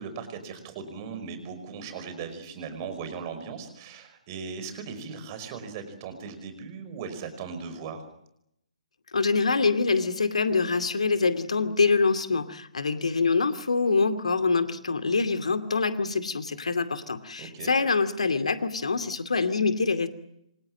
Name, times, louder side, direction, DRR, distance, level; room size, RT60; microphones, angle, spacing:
voice 1, 0.0-8.0 17.4-17.7, right 5 dB, 30° right, 9 dB, 5.5 m, -38 dB
voice 2, 9.1-20.1, left 4 dB, 60° left, 9 dB, 2.5 m, -25 dB
27.5 x 25.5 x 7.6 m, 0.79 s
figure-of-eight pair, 135°, 4 cm